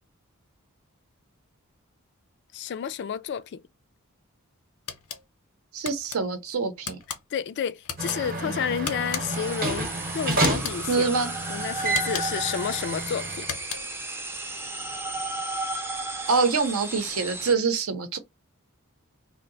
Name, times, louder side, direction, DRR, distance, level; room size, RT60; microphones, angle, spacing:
voice 1, 2.5-3.6 7.3-11.1 11.5-13.5, left 8 dB, 50° left, 0.3 m, -30 dB
sound 1, 4.9-5.2 5.8-6.2 6.8-7.2 7.8-8.2 8.8-9.5 10.4-10.8 11.9-12.5 13.4-14.0, left 7 dB, 90° left, 0.7 m, -35 dB
voice 2, 5.7-7.0 8.5-8.6 10.9-11.3 16.3-18.2, right 4 dB, 70° right, 0.7 m, -25 dB
sound 2, 8.0-13.5, right 2 dB, 40° right, 0.8 m, -30 dB
sound 3, 9.3-17.5, right 2 dB, 10° right, 0.4 m, -34 dB
2.7 x 2.1 x 3.9 m
head